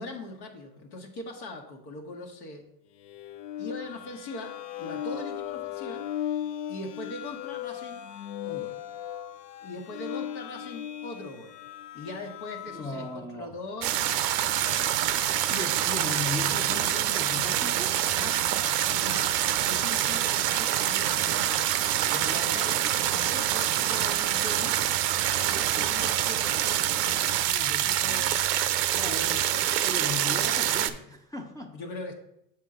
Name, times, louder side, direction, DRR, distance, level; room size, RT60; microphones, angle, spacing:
voice 1, 0.0-2.6 3.6-6.0 6.7-8.0 8.4-8.8 9.6-11.6 11.9-14.0 14.6-15.0 18.1-21.7 22.1-22.8 23.1-24.8 25.4-27.3 27.7-28.4 29.0-29.8 31.6-32.1, left 2 dB, 70° left, 0 dB, 1.3 m, -41 dB
sound 1, 3.0-13.3, left 10 dB, 90° left, 0.7 m, -37 dB
voice 2, 12.7-13.6 15.5-18.0 27.4-28.4 28.9-29.3 29.8-31.8, left 2 dB, 10° left, 3 dB, 0.4 m, -37 dB
sound 2, 13.8-30.9, right 12 dB, 85° right, 0.6 m, -26 dB
7.3 x 4.6 x 3.7 m, 0.77 s
hypercardioid pair, 95°, 47 cm